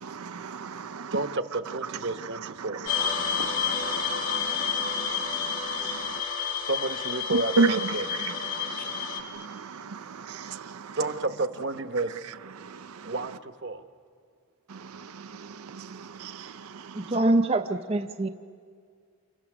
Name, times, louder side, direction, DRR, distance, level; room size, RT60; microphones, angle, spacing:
voice 1, 0.0-1.2 2.2-6.2 7.3-11.0 12.6-13.1 14.7-17.1, right 4 dB, 85° right, 0.6 m, -34 dB
voice 2, 1.1-2.8 6.6-8.1 11.0-12.1 13.0-13.8, right 2 dB, 55° right, 1.0 m, -31 dB
sound 1, 2.9-9.2, left 7 dB, 65° left, 1.9 m, -30 dB
voice 3, 16.9-18.3, right 2 dB, 25° right, 0.6 m, -24 dB
29.5 x 27.5 x 6.1 m
head